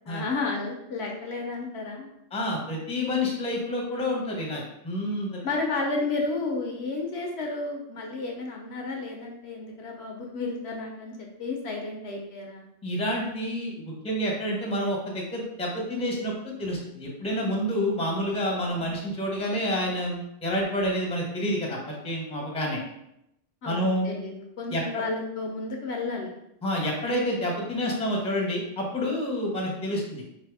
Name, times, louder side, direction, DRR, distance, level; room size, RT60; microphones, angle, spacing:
voice 1, 0.0-2.1 5.4-12.7 18.5-18.9 23.6-26.3, left 3 dB, 65° left, 0 dB, 0.9 m, -32 dB
voice 2, 2.3-5.4 12.8-22.8 23.6-24.1 24.7-25.0 26.6-30.2, equal, 5° left, -2 dB, 0.7 m, -28 dB
3.4 x 2.7 x 4.6 m, 0.82 s
omnidirectional pair, 1.3 m